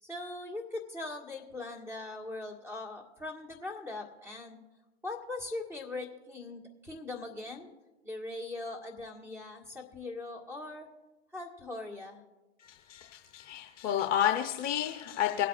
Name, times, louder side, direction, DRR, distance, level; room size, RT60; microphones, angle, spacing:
voice 1, 0.0-4.6 5.0-7.7 8.0-10.9 11.3-12.2, left 2 dB, 5° right, 1 dB, 1.7 m, -40 dB
voice 2, 12.6-15.5, left 10 dB, 25° left, 3 dB, 0.8 m, -31 dB
24.0 x 8.3 x 2.5 m, 1.1 s
hypercardioid pair, 120°, 35 cm